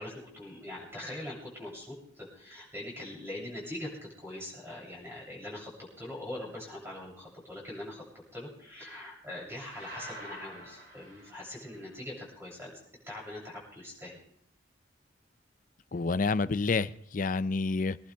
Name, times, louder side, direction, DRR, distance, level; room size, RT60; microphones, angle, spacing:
voice 1, 0.0-8.0 8.3-12.7 13.0-14.2, left 1 dB, 15° right, -4 dB, 7.6 m, -42 dB
sound 1, 9.7-11.9, right 1 dB, 65° right, 6.5 m, -46 dB
voice 2, 15.9-18.0, left 3 dB, 45° left, 16 dB, 0.5 m, -28 dB
25.0 x 11.5 x 3.5 m, 0.71 s
head